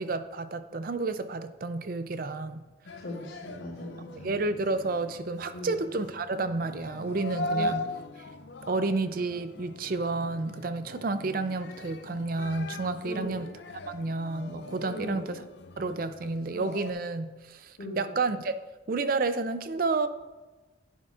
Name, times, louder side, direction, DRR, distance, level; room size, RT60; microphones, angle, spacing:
voice 1, 0.0-2.6 4.1-7.9 8.7-13.5 13.9-15.4 15.8-18.6 18.9-20.1, right 3 dB, 45° right, 11 dB, 0.4 m, -30 dB
voice 2, 2.9-4.3 5.5-5.7 7.5-7.8 13.0-13.3 14.8-15.2 17.8-18.0, left 1 dB, 90° left, -8 dB, 2.9 m, -38 dB
sound 1, 2.9-16.9, left 2 dB, 60° left, 0.5 m, -40 dB
11.0 x 9.1 x 2.4 m, 1.2 s
head